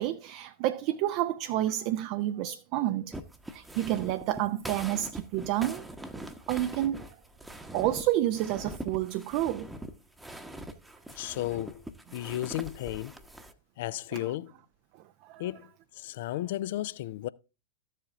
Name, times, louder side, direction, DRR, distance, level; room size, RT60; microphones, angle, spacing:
voice 1, 0.0-3.2 3.5-5.8 6.5-7.1 7.7-9.7 14.1-14.3 15.2-15.4, right 14 dB, 45° right, 0.4 m, -29 dB
sound 1, 3.1-13.5, right 1 dB, 5° right, 0.9 m, -43 dB
voice 2, 11.1-11.9 12.1-13.1 13.8-14.5 15.4-17.3, left 15 dB, 55° left, 0.4 m, -34 dB
13.5 x 7.5 x 2.5 m
figure-of-eight pair, 90°, 0 cm